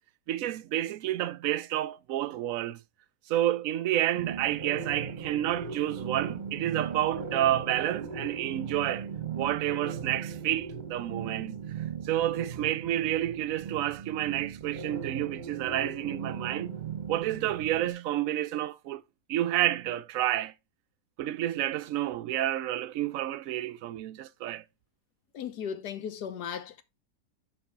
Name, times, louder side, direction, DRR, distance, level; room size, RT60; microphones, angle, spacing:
voice 1, 0.3-2.8 3.3-9.1 9.3-11.6 12.0-16.8 17.1-19.0 19.3-20.5 21.2-24.6, right 13 dB, 70° right, 0.8 m, -30 dB
sound 1, 4.1-17.9, right 6 dB, 30° right, 1.0 m, -38 dB
voice 2, 25.3-26.8, left 8 dB, 70° left, 1.4 m, -36 dB
6.4 x 5.2 x 4.6 m
omnidirectional pair, 1.9 m